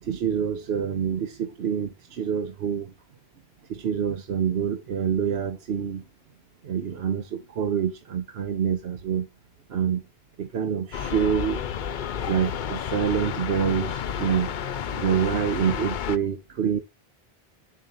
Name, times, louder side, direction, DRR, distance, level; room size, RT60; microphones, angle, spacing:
voice 1, 0.0-2.9 3.7-6.0 6.6-9.3 9.7-10.1 10.4-11.6 12.3-14.6 14.9-16.8, right 8 dB, 85° right, 1.0 m, -26 dB
sound 1, 10.9-16.2, left 8 dB, 60° left, 0.7 m, -31 dB
10.5 x 4.8 x 2.9 m
omnidirectional pair, 1.0 m